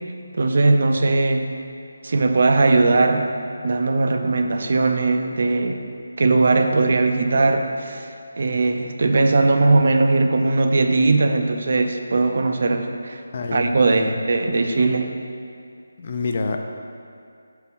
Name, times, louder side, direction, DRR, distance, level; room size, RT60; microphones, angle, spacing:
voice 1, 0.3-1.5 2.0-3.3 3.6-5.8 6.2-8.1 8.4-13.2 13.5-15.1, right 3 dB, 45° right, 5 dB, 0.4 m, -19 dB
voice 2, 13.3-14.2 16.0-16.6, left 3 dB, 30° left, 4 dB, 0.4 m, -27 dB
5.1 x 4.5 x 5.4 m, 2.4 s
figure-of-eight pair, 175°, 0 cm